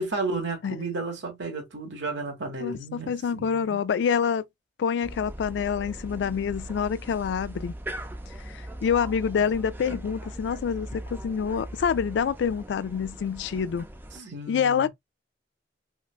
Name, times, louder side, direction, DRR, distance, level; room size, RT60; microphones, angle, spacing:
voice 1, 0.0-3.8 14.1-14.9, right 3 dB, 85° right, 1.3 m, -33 dB
voice 2, 2.6-4.4 4.8-7.7 8.5-13.9 14.5-14.9, left 7 dB, 70° left, 0.3 m, -27 dB
sound 1, 5.0-14.2, right 1 dB, 10° right, 0.5 m, -40 dB
3.6 x 2.2 x 2.4 m
head